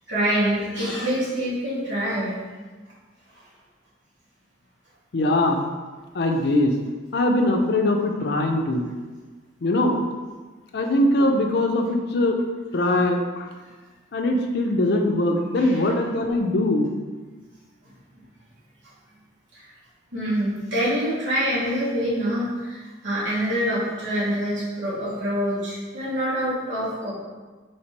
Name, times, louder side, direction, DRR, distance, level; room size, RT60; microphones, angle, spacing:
voice 1, 0.1-2.4 15.6-15.8 19.5-19.6 20.1-27.1, equal, 90° right, -9 dB, 1.4 m, -25 dB
voice 2, 5.1-5.6 6.1-6.8 7.1-8.9 9.6-10.0 10.7-12.4 12.7-13.5 14.1-16.9, left 1 dB, 60° left, 3 dB, 0.5 m, -21 dB
3.3 x 2.8 x 4.5 m, 1.3 s
head